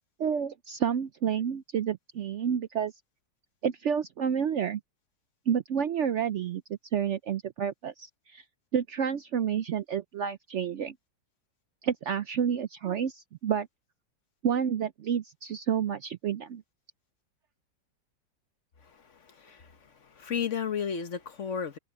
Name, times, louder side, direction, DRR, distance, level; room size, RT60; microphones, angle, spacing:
voice 1, 0.2-2.9 3.6-4.8 5.5-6.6 6.9-8.4 8.7-10.9 11.8-13.7 14.4-16.6, right 8 dB, 75° right, 0.6 m, -29 dB
voice 2, 18.8-19.7 20.0-21.8, left 7 dB, 45° left, 1.4 m, -34 dB
omnidirectional pair, 1.9 m